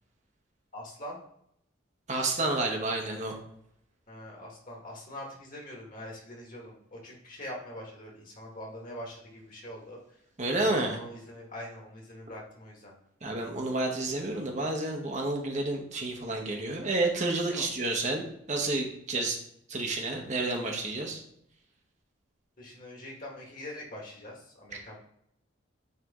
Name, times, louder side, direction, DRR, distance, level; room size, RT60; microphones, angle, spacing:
voice 1, 0.7-1.2 4.1-10.0 10.6-13.0 17.4-17.7 19.1-19.3 22.6-25.0, left 1 dB, 40° left, -2 dB, 1.8 m, -43 dB
voice 2, 2.1-3.4 10.4-11.0 13.2-19.4 19.7-21.2 24.7-24.8, right 2 dB, 35° right, 1 dB, 0.9 m, -30 dB
9.2 x 3.3 x 3.6 m, 0.72 s
head